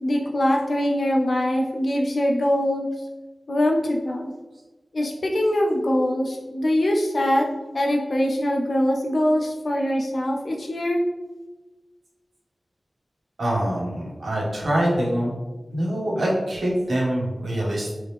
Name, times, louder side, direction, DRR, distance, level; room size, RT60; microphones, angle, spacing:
voice 1, 0.0-2.9 3.5-4.3 4.9-7.5 7.7-11.0, left 1 dB, 60° left, 0 dB, 0.5 m, -23 dB
voice 2, 13.4-15.3 15.7-17.9, right 1 dB, 85° right, -4 dB, 1.2 m, -24 dB
3.7 x 3.4 x 3.2 m, 1.2 s
wide cardioid pair, 90°, 0 cm